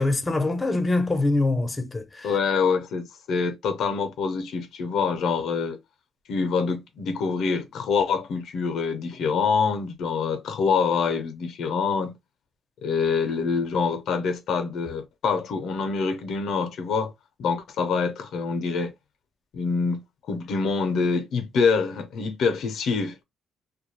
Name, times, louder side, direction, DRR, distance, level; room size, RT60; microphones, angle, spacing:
voice 1, 0.0-2.3, left 2 dB, 25° left, 0.5 m, -24 dB
voice 2, 2.2-5.8 6.3-12.2 12.8-17.1 17.4-18.9 19.5-20.0 20.3-23.2, left 5 dB, 75° left, 0.5 m, -25 dB
2.2 x 2.1 x 2.9 m
cardioid pair, 90°, 0 cm